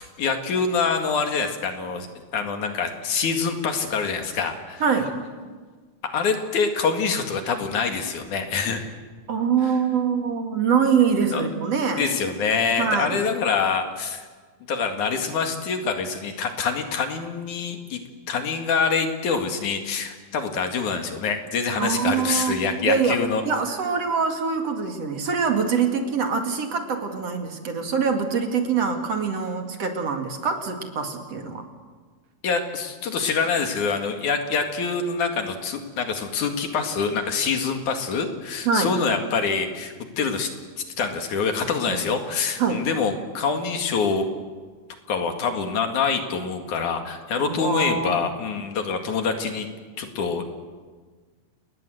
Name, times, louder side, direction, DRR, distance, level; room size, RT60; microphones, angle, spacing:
voice 1, 0.2-2.1 2.3-4.8 6.1-8.8 11.3-11.4 12.0-14.2 14.7-18.0 18.3-23.4 32.4-40.5 41.0-44.3 45.1-49.7 50.0-50.5, left 5 dB, 70° left, 5 dB, 3.5 m, -25 dB
voice 2, 4.8-5.2 9.3-12.0 12.8-13.2 21.8-31.7 38.6-38.9 41.9-42.0 42.6-42.9 47.4-48.2, right 6 dB, 50° right, 4 dB, 3.1 m, -24 dB
30.0 x 20.0 x 7.9 m, 1.5 s
omnidirectional pair, 3.7 m